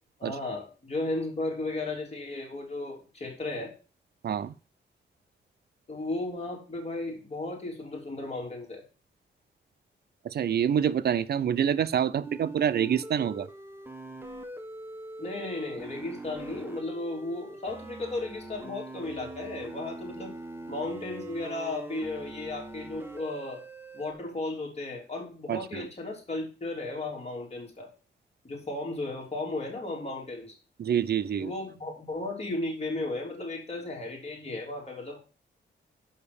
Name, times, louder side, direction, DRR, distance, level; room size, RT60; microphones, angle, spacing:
voice 1, 0.2-3.7 5.9-8.8 15.2-20.3 20.7-23.6 23.9-27.9 28.4-30.6 31.4-35.2, left 2 dB, 35° left, 3.6 m, -35 dB
voice 2, 10.2-13.5 25.5-25.9 30.8-31.5, right 8 dB, 55° right, 0.6 m, -27 dB
sound 1, 12.2-24.1, right 2 dB, 10° right, 1.4 m, -42 dB
6.6 x 5.4 x 7.0 m
cardioid pair, 105°, 20 cm